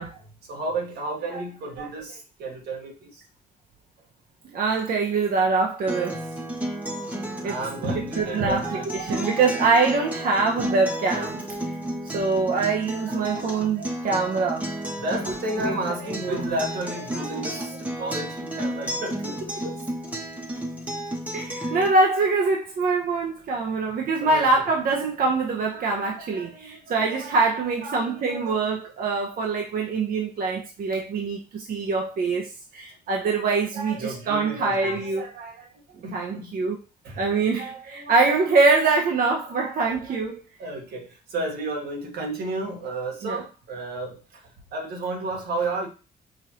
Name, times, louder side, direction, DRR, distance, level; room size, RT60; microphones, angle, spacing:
voice 1, 0.0-3.2 7.4-9.4 10.0-11.1 12.9-13.9 15.0-19.8 21.6-21.8 24.2-24.7 25.7-28.6 33.7-36.6 37.0-37.3 37.6-39.1 39.5-40.2 40.6-45.9, right 2 dB, 85° right, 1.2 m, -33 dB
voice 2, 4.5-6.3 7.4-7.6 8.0-11.4 12.0-14.7 15.6-15.7 16.1-16.6 18.0-18.1 21.3-35.3 36.1-36.8 37.2-40.4 43.2-43.5, right 3 dB, 65° right, 0.7 m, -24 dB
Acoustic guitar, 5.9-21.9, right 1 dB, 10° right, 1.0 m, -32 dB
5.0 x 2.6 x 2.8 m
cardioid pair, 80°, 16 cm